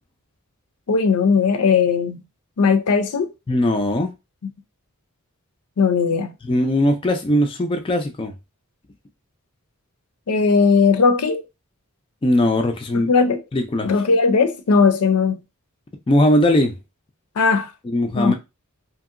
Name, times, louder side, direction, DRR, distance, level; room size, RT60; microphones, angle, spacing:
voice 1, 0.9-2.2 2.6-3.3 5.8-6.3 10.3-11.4 13.1-13.4 13.8-15.4 17.4-17.7 18.2-18.3, left 5 dB, 85° left, 0.5 m, -18 dB
voice 2, 3.5-4.1 6.5-8.3 12.2-13.1 13.5-13.9 16.1-16.8 17.8-18.3, left 1 dB, 25° left, 0.3 m, -19 dB
2.9 x 2.7 x 2.5 m
head